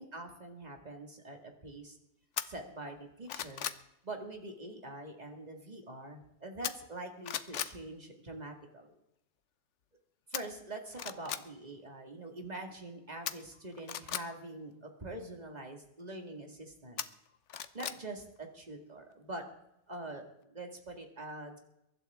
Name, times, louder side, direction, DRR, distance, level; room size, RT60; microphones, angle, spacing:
voice 1, 0.0-2.0 2.5-3.6 4.0-8.9 10.3-17.0 17.7-19.5 19.9-21.6, right 2 dB, 25° right, 3 dB, 2.1 m, -44 dB
sound 1, 2.4-2.5 3.0-3.8 6.6-7.0 7.2-7.7 10.3-10.4 10.9-11.4 13.3-14.2 17.0-18.0 18.4-18.5, left 9 dB, 55° left, 0.9 m, -37 dB
23.0 x 12.0 x 3.6 m, 0.83 s
omnidirectional pair, 1.7 m